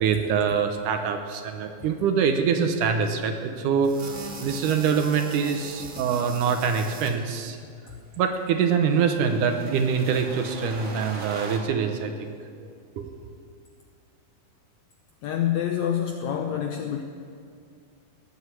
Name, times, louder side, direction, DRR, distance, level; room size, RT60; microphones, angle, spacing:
voice 1, 0.0-7.6 8.2-12.3 13.0-13.1, right 6 dB, 70° right, 6 dB, 2.3 m, -24 dB
sound 1, 3.8-7.1 8.2-11.6, right 3 dB, 35° right, 1.3 m, -41 dB
voice 2, 15.2-17.0, left 9 dB, 80° left, 4 dB, 1.6 m, -27 dB
19.0 x 8.0 x 8.2 m, 2.3 s
omnidirectional pair, 4.1 m